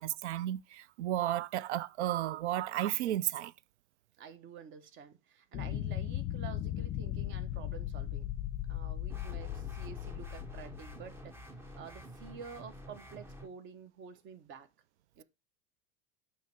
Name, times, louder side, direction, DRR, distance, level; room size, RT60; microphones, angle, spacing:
voice 1, 0.0-3.5, right 13 dB, 90° right, 0.5 m, -33 dB
voice 2, 4.2-8.3 8.7-11.3 11.8-14.7 15.2-15.3, right 6 dB, 35° right, 1.1 m, -49 dB
sound 1, 5.5-11.3, left 12 dB, 35° left, 0.7 m, -37 dB
sound 2, 9.1-13.5, right 1 dB, 5° right, 0.7 m, -49 dB
9.2 x 3.3 x 4.6 m
supercardioid pair, 130°, 33 cm